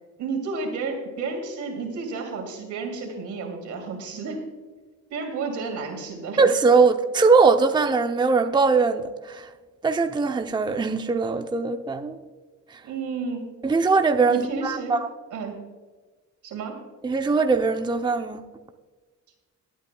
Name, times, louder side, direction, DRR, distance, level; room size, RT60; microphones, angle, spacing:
voice 1, 0.2-4.4 5.1-6.4 12.8-13.5 14.3-15.0 15.3-15.7 16.4-16.8, right 4 dB, 75° right, 2.7 m, -31 dB
voice 2, 6.4-9.5 9.8-12.2 12.7-12.8 13.6-15.1 17.0-18.4, right 4 dB, 15° right, 0.6 m, -21 dB
22.0 x 9.0 x 2.3 m
cardioid pair, 90°, 30 cm